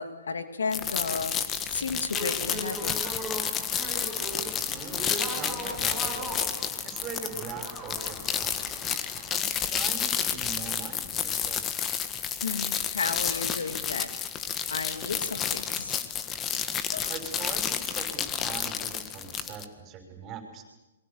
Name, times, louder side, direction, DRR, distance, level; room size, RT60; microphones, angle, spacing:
voice 1, 0.0-2.9 12.4-14.2 14.7-16.0 16.9-17.2, left 4 dB, 80° left, 7 dB, 2.4 m, -33 dB
sound 1, 0.7-19.7, left 8 dB, 20° left, 1.6 m, -31 dB
sound 2, 2.1-9.3, right 1 dB, 5° left, 7.2 m, -39 dB
voice 2, 4.7-6.2 6.8-8.6 9.3-12.0 17.1-20.6, right 6 dB, 25° right, 5 dB, 6.3 m, -42 dB
27.5 x 23.0 x 7.2 m, 1.0 s
hypercardioid pair, 130°, 0 cm